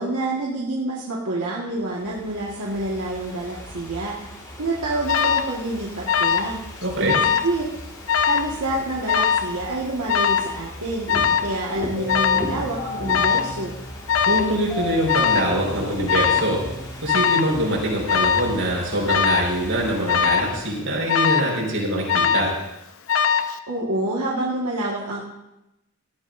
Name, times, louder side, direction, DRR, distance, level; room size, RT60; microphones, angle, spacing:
voice 1, 0.0-4.2 4.6-6.6 7.0-7.2 7.4-7.6 8.3-11.1 11.4-13.8 23.7-25.2, right 2 dB, 90° right, -5 dB, 1.7 m, -27 dB
Ocean / Fireworks, 1.7-21.0, equal, 15° left, 2.1 m, -38 dB
Alarm, 5.1-5.5 6.1-6.6 6.8-7.5 8.1-8.5 9.1-9.5 10.1-10.5 11.1-11.5 12.1-12.5 13.1-13.5 14.1-14.5 15.1-15.5 16.1-16.5 17.1-17.5 18.1-18.5 19.1-19.5 20.1-20.5 21.1-21.6 22.1-22.6 23.1-23.6, left 7 dB, 65° left, 0.7 m, -21 dB
voice 2, 6.8-7.1 14.2-16.6 17.0-22.5, right 1 dB, 65° right, -2 dB, 4.9 m, -24 dB
sound 1, 12.0-18.1, left 2 dB, 35° left, 3.0 m, -36 dB
18.5 x 14.0 x 2.6 m, 0.92 s
head